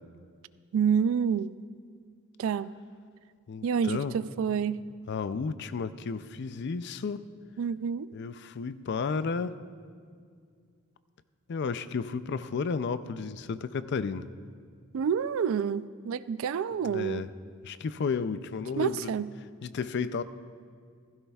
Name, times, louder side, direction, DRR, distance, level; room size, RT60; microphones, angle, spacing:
voice 1, 0.7-1.6 2.4-2.7 3.6-4.8 7.6-8.1 14.9-17.3 18.8-19.3, right 7 dB, 70° right, 16 dB, 0.3 m, -28 dB
voice 2, 3.5-4.2 5.1-7.3 8.1-9.6 11.5-14.3 16.8-17.3 17.6-19.1 19.6-20.2, left 5 dB, 55° left, 13 dB, 0.4 m, -32 dB
16.0 x 15.5 x 2.3 m, 2.1 s
head